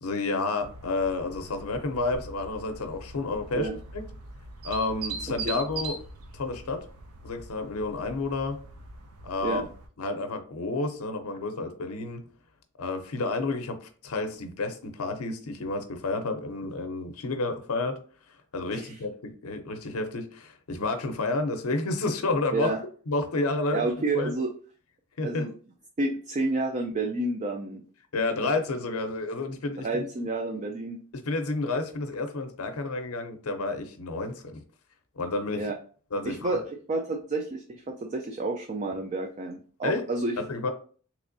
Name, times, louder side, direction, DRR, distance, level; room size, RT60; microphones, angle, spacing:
voice 1, 0.0-4.0 4.6-6.0 6.3-6.8 7.2-8.6 9.2-9.6 10.0-12.2 12.8-18.0 18.5-22.7 23.1-23.9 24.1-24.3 25.2-25.5 28.1-30.1 31.1-34.6 35.2-35.7 36.1-36.6 39.8-40.0 40.5-40.7, left 3 dB, 80° left, 7 dB, 0.6 m, -30 dB
sound 1, 0.6-9.9, right 3 dB, 85° right, 0.5 m, -41 dB
voice 2, 23.7-24.5 25.2-25.5 26.0-27.8 29.8-31.0 35.5-35.7 36.2-40.3, right 2 dB, 35° right, 4 dB, 0.3 m, -30 dB
3.4 x 3.0 x 2.6 m, 0.42 s
head